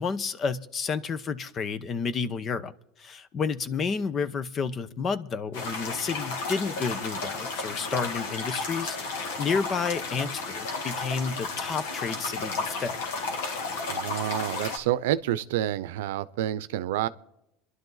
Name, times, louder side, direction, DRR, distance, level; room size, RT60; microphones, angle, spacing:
voice 1, 0.0-2.7 3.0-13.0, left 5 dB, 35° left, 0.9 m, -31 dB
sound 1, 5.5-14.8, left 3 dB, 85° left, 2.4 m, -33 dB
voice 2, 13.8-17.1, right 12 dB, 90° right, 0.7 m, -28 dB
26.5 x 11.0 x 4.0 m
supercardioid pair, 115°, 0 cm